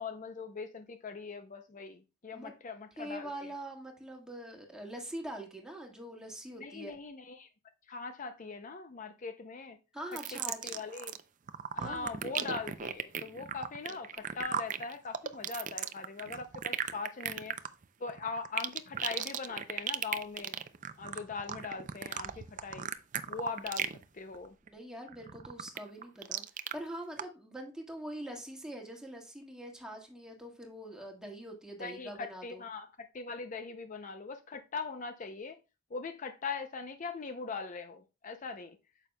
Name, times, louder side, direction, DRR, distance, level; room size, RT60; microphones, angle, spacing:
voice 1, 0.0-3.5 6.6-7.5 7.9-9.8 10.3-11.1 11.7-17.5 18.0-20.6 21.0-22.9 23.3-24.6 31.8-35.6 35.9-38.8, left 4 dB, 40° left, 0.5 m, -41 dB
voice 2, 3.0-7.0 9.9-10.7 11.8-12.2 24.6-26.4 26.7-32.6, right 1 dB, 5° right, 1.7 m, -44 dB
sound 1, 10.1-11.2 11.5-24.0 24.3-24.7 25.1-26.7 27.2-27.3, right 8 dB, 40° right, 0.5 m, -36 dB
9.0 x 6.9 x 2.2 m
head